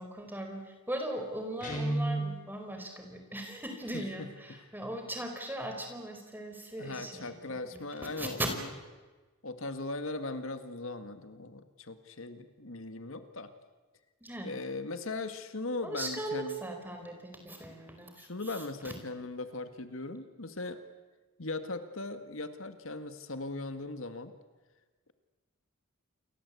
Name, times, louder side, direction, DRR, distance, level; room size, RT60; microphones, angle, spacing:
voice 1, 0.0-8.5 14.2-14.5 15.8-18.9, right 1 dB, 10° right, 4 dB, 4.6 m, -39 dB
Guitar, 1.6-2.4, right 2 dB, 35° left, 6.1 m, -31 dB
voice 2, 3.9-4.3 6.8-8.7 9.4-13.5 14.4-16.6 18.2-20.8 21.4-24.3, left 2 dB, 65° left, 9 dB, 1.9 m, -39 dB
29.0 x 23.5 x 8.4 m, 1.3 s
head